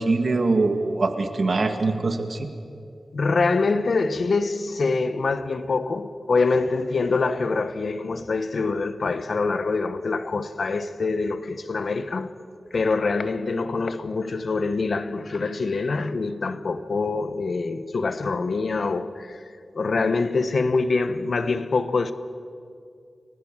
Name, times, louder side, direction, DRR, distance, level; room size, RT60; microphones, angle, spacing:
voice 1, 0.0-2.5, right 3 dB, 55° right, 1.7 m, -23 dB
voice 2, 3.1-12.3 12.7-22.1, left 3 dB, 65° left, 1.1 m, -25 dB
30.0 x 20.0 x 7.4 m
wide cardioid pair, 115°, 0 cm